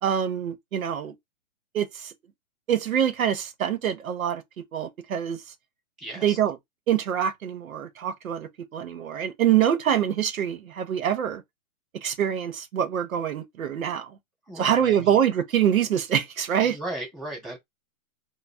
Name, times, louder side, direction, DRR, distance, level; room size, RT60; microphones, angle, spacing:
voice 1, 0.0-1.1 1.7-2.1 2.7-4.4 4.7-5.4 6.2-6.6 6.9-11.4 12.0-14.2 14.6-16.8, right 9 dB, 75° right, 0.7 m, -25 dB
voice 2, 6.0-6.4 14.5-15.2 16.6-17.6, right 1 dB, 5° right, 0.8 m, -36 dB
2.5 x 2.0 x 3.2 m
hypercardioid pair, 175°, 42 cm